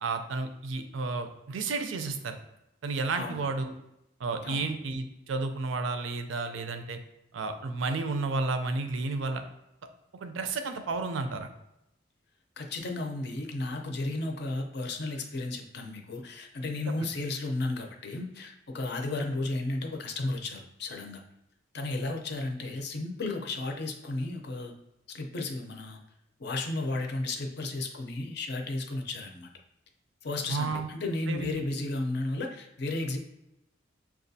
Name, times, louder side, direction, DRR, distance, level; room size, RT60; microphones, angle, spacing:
voice 1, 0.0-2.4 2.8-3.7 4.2-7.0 7.3-9.4 10.2-11.5 16.9-17.0 30.5-30.9 31.3-31.6, right 3 dB, 75° right, 7 dB, 0.4 m, -32 dB
voice 2, 12.6-21.2 21.7-24.7 25.1-26.0 26.4-29.5 30.2-33.2, left 2 dB, 55° left, 3 dB, 0.5 m, -33 dB
5.9 x 2.3 x 2.7 m, 0.87 s
head